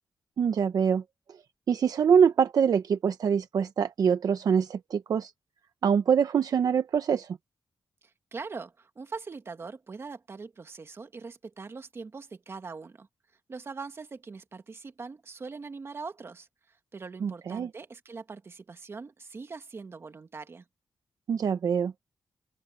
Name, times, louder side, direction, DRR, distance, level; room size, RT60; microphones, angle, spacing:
voice 1, 0.4-1.0 1.7-5.3 5.8-7.4 17.2-17.7 21.3-21.9, right 7 dB, 65° right, 0.8 m, -24 dB
voice 2, 8.3-13.1 13.5-20.6, right 4 dB, 40° right, 1.8 m, -42 dB
open air
wide cardioid pair, 120°, 7 cm